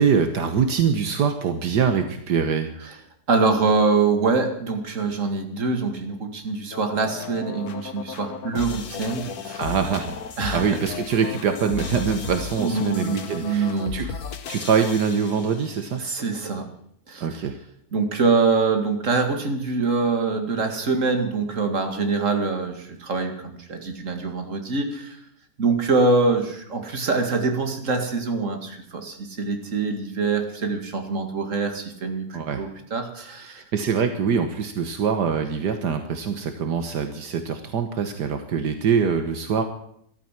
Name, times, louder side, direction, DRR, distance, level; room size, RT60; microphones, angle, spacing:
voice 1, 0.0-2.7 9.6-10.2 10.5-14.2 14.5-16.0 17.2-17.6 32.3-32.6 33.6-39.6, right 6 dB, 75° right, 7 dB, 1.7 m, -24 dB
voice 2, 3.3-9.6 10.4-10.8 12.6-13.9 16.0-16.7 17.1-17.4 17.9-25.2 25.6-33.6, right 4 dB, 45° right, 4 dB, 2.5 m, -24 dB
sound 1, 6.7-15.9, left 6 dB, 65° left, 1.6 m, -35 dB
14.5 x 12.5 x 7.4 m, 0.70 s
omnidirectional pair, 1.8 m